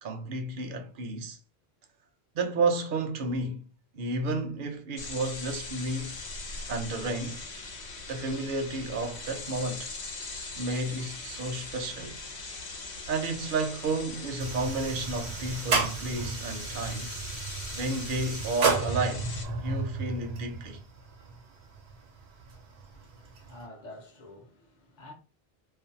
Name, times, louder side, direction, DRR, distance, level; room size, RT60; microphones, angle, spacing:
voice 1, 0.0-1.4 2.3-3.6 3.9-6.2 6.7-7.4 8.1-9.9 10.6-12.2 13.1-17.1 17.7-19.3 19.6-20.8, right 2 dB, 60° right, 0.6 m, -31 dB
sound 1, 5.0-19.5, left 3 dB, 80° left, 1.0 m, -41 dB
sound 2, 14.4-23.7, right 4 dB, 85° right, 0.9 m, -33 dB
voice 2, 22.9-25.1, left 2 dB, 50° left, 0.7 m, -49 dB
2.5 x 2.2 x 2.6 m
omnidirectional pair, 1.1 m